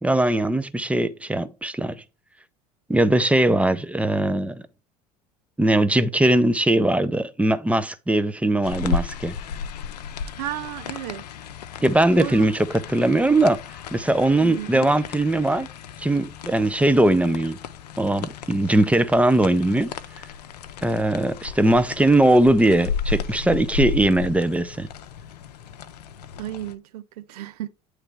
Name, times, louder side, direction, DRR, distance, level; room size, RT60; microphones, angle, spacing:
voice 1, 0.0-1.9 2.9-4.6 5.6-9.3 11.8-13.6 13.9-15.7 16.0-17.6 18.0-19.9 20.8-24.9, right 1 dB, 5° right, 0.6 m, -20 dB
sound 1, 8.6-26.7, left 6 dB, 80° left, 0.5 m, -34 dB
voice 2, 10.4-11.3 12.2-12.5 14.4-15.0 26.4-27.7, right 13 dB, 70° right, 0.6 m, -33 dB
8.8 x 3.3 x 4.6 m
hypercardioid pair, 70°, 21 cm